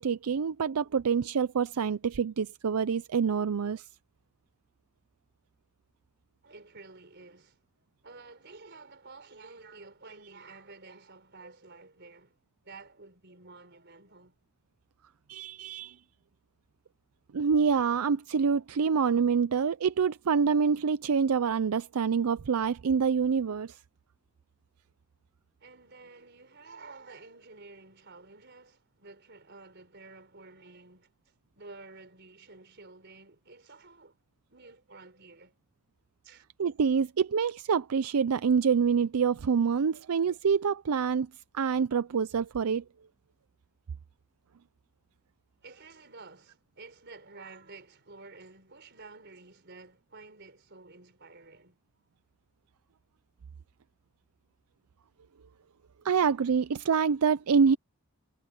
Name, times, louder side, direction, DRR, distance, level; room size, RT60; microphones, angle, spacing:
voice 1, 0.0-3.8 15.3-15.9 17.3-23.7 36.6-41.3 41.5-42.8 56.0-57.8, right 6 dB, 80° right, 0.5 m, -26 dB
voice 2, 6.4-7.6 8.0-12.4 12.6-14.3 25.6-31.1 31.6-34.2 34.5-35.6 36.2-36.4 45.6-51.8, right 3 dB, 50° right, 4.3 m, -51 dB
head